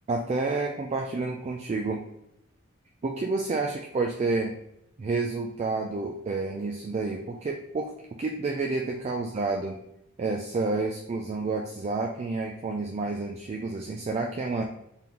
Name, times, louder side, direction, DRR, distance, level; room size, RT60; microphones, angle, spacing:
voice 1, 0.1-2.0 3.0-4.5 5.0-7.9 8.2-9.8 10.2-14.6, right 3 dB, 30° right, 1 dB, 0.3 m, -29 dB
3.7 x 3.7 x 2.9 m, 0.81 s
head